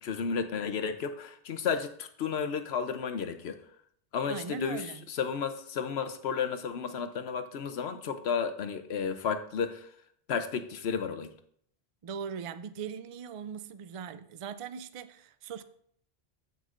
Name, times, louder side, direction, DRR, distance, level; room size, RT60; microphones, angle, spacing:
voice 1, 0.0-3.6 4.1-4.8 5.1-9.9 10.3-11.3, left 6 dB, 75° left, 1.0 m, -32 dB
voice 2, 4.3-5.0 12.0-15.6, right 6 dB, 55° right, 0.3 m, -40 dB
14.0 x 5.4 x 2.5 m
omnidirectional pair, 1.1 m